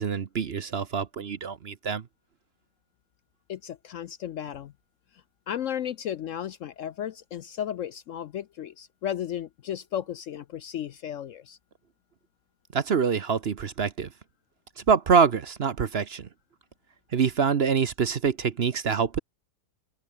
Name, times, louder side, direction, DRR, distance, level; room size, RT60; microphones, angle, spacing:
voice 1, 0.0-2.0 12.7-14.1 14.9-16.3 17.1-19.2, right 6 dB, 45° right, 1.0 m, -25 dB
voice 2, 3.5-4.7 5.5-11.6, left 10 dB, 65° left, 0.8 m, -34 dB
open air
omnidirectional pair, 1.7 m